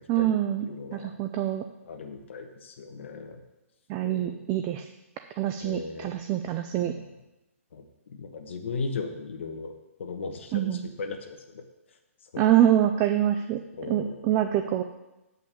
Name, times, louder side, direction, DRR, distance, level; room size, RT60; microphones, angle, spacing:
voice 1, 0.1-0.7 0.9-1.6 3.9-4.9 5.4-6.9 10.5-10.9 12.4-13.6 13.9-14.8, right 12 dB, 20° right, 8 dB, 0.3 m, -25 dB
voice 2, 0.6-1.1 1.8-3.4 4.0-4.6 5.6-6.1 6.7-7.1 7.7-7.8 8.1-9.7 10.0-11.6 12.3-12.5 13.8-14.3 14.7-14.8, left 4 dB, 55° left, 3 dB, 1.3 m, -37 dB
8.3 x 5.5 x 7.6 m, 1.0 s
hypercardioid pair, 165°, 8 cm